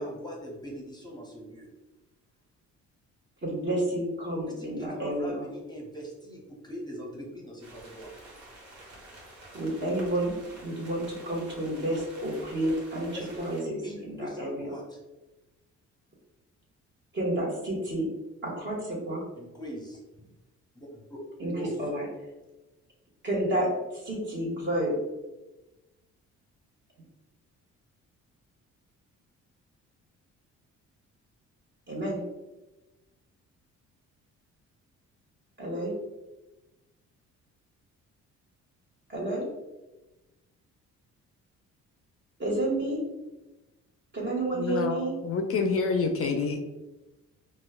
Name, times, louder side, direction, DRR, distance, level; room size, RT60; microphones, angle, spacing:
voice 1, 0.0-1.7 4.6-8.1 13.1-13.5 13.8-15.0 19.4-20.3 20.7-21.2 21.5-21.8, equal, 15° left, -2 dB, 0.8 m, -41 dB
voice 2, 3.4-5.4 9.5-10.3 10.6-13.1 13.4-13.8 14.0-14.7 17.1-18.1 18.4-19.2 21.4-21.5 21.8-22.1 23.2-23.7 23.9-24.9 31.9-32.2 35.6-35.9 39.1-39.4 42.4-43.0 44.1-45.1, right 1 dB, 40° right, -4 dB, 1.4 m, -30 dB
sound 1, 7.6-13.6, right 1 dB, 75° right, 1.2 m, -49 dB
voice 3, 44.5-46.6, left 4 dB, 50° left, 5 dB, 0.4 m, -27 dB
4.3 x 2.3 x 2.3 m, 1.1 s
cardioid pair, 90°, 30 cm